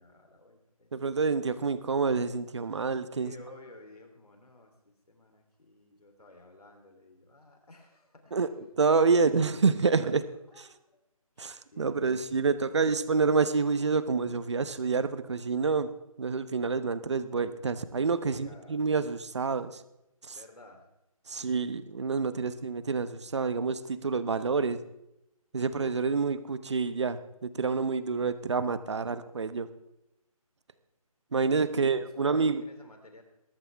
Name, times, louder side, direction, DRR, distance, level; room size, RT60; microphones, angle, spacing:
voice 1, 0.0-1.2 3.2-8.4 9.1-9.7 10.0-11.0 11.3-12.8 18.3-18.9 20.3-20.9 25.6-25.8 31.7-33.2, left 2 dB, 90° left, 4 dB, 3.3 m, -54 dB
voice 2, 0.9-3.3 8.3-10.2 10.6-10.7 11.4-15.9 16.2-19.8 20.2-20.4 21.3-24.8 25.5-29.7 31.3-32.6, right 4 dB, 50° right, 13 dB, 1.0 m, -28 dB
21.5 x 13.0 x 3.5 m, 0.86 s
figure-of-eight pair, 170°, 19 cm